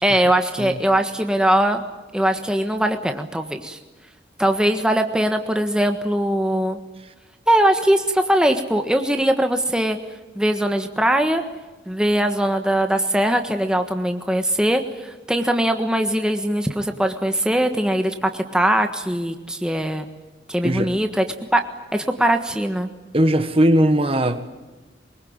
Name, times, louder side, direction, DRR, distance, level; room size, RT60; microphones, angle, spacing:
voice 1, 0.0-1.8 2.1-3.8 4.4-6.8 7.5-10.0 10.3-11.4 11.9-20.0 20.5-21.2 21.5-22.9, right 1 dB, 5° right, 5 dB, 1.4 m, -21 dB
voice 2, 23.1-24.4, right 1 dB, 30° right, 9 dB, 1.5 m, -18 dB
24.0 x 22.5 x 8.9 m, 1.2 s
head